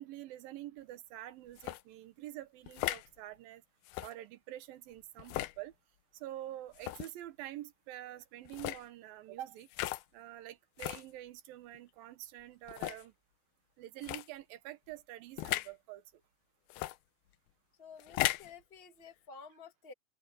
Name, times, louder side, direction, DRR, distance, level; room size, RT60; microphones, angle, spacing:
voice 1, 0.0-3.6 4.0-5.7 6.1-9.7 10.1-13.1 13.8-16.0, right 14 dB, 70° right, 2.7 m, -47 dB
sound 1, 1.6-1.8 2.7-3.1 3.9-4.1 5.2-5.6 6.7-7.1 8.5-8.8 9.7-10.0 10.8-11.0 11.7-11.8 12.7-13.0 14.0-14.3 15.4-15.7 16.7-17.0 18.0-18.5, left 17 dB, 80° left, 2.5 m, -36 dB
voice 2, 17.8-19.9, left 5 dB, 20° left, 1.9 m, -52 dB
open air
omnidirectional pair, 4.5 m